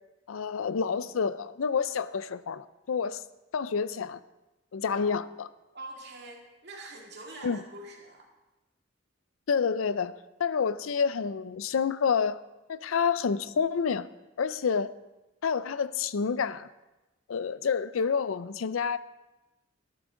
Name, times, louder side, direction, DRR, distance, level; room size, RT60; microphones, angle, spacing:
voice 1, 0.3-3.2 3.5-4.2 4.7-5.5 7.4-7.6 9.5-10.1 10.4-12.4 12.7-14.1 14.4-14.9 15.4-16.7 17.3-19.0, left 6 dB, 90° left, 16 dB, 0.5 m, -28 dB
voice 2, 4.9-5.2 5.7-8.3, right 2 dB, 55° right, 0 dB, 2.4 m, -44 dB
12.5 x 12.0 x 3.8 m, 1.0 s
head